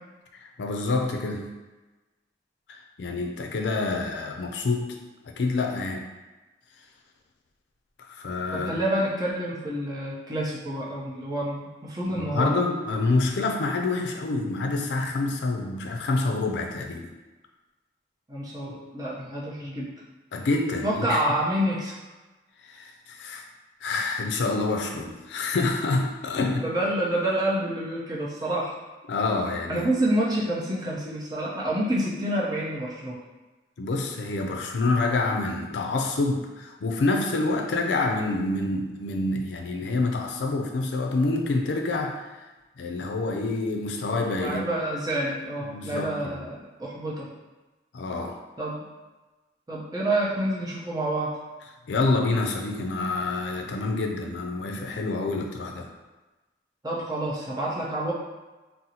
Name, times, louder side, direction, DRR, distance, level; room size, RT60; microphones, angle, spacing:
voice 1, 0.4-1.5 2.7-5.0 5.3-6.1 8.1-8.9 12.1-17.1 20.3-21.2 22.7-23.4 23.8-26.7 29.1-29.9 33.8-42.2 42.8-44.7 45.6-46.4 47.9-48.4 51.9-55.9, left 3 dB, 80° left, 2 dB, 0.4 m, -27 dB
voice 2, 8.7-12.5 18.3-19.9 20.8-21.9 26.6-28.7 29.7-33.2 44.4-47.3 48.6-48.8 49.7-51.3 56.8-58.1, right 1 dB, 20° right, -6 dB, 0.6 m, -28 dB
3.9 x 2.0 x 2.8 m, 1.2 s
head